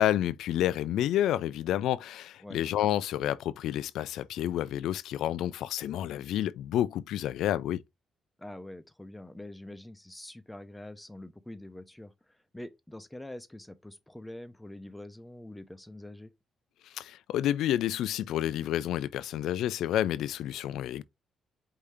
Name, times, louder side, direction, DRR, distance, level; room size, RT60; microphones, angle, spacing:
voice 1, 0.0-7.8 16.9-21.0, left 12 dB, 85° left, 0.3 m, -29 dB
voice 2, 8.4-16.3, left 1 dB, 5° left, 0.6 m, -45 dB
4.9 x 2.8 x 3.4 m
cardioid pair, 90°, 0 cm